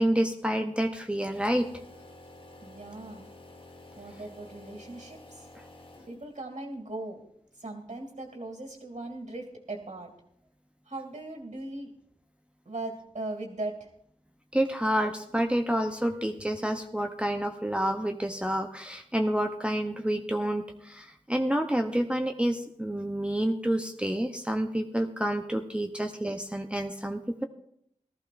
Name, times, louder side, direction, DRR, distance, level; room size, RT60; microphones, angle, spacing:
voice 1, 0.0-1.7 14.5-27.5, right 1 dB, 10° right, 4 dB, 0.7 m, -28 dB
sound 1, 1.3-6.5, left 2 dB, 45° left, 1.3 m, -50 dB
voice 2, 2.6-3.3 4.0-5.5 6.1-7.2 7.5-10.1 10.9-11.9 12.7-13.9, right 2 dB, 70° right, 1 dB, 2.3 m, -39 dB
18.5 x 14.0 x 2.5 m, 0.73 s
wide cardioid pair, 70°, 13 cm